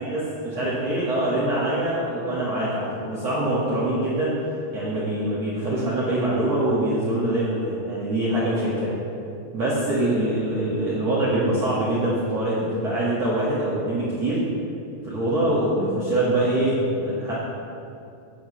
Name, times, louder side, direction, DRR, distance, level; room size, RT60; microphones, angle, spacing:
voice 1, 0.0-4.4 4.7-8.9 9.5-14.4 15.0-17.3, right 1 dB, 85° right, -9 dB, 1.4 m, -24 dB
16.5 x 7.8 x 3.2 m, 2.6 s
omnidirectional pair, 5.9 m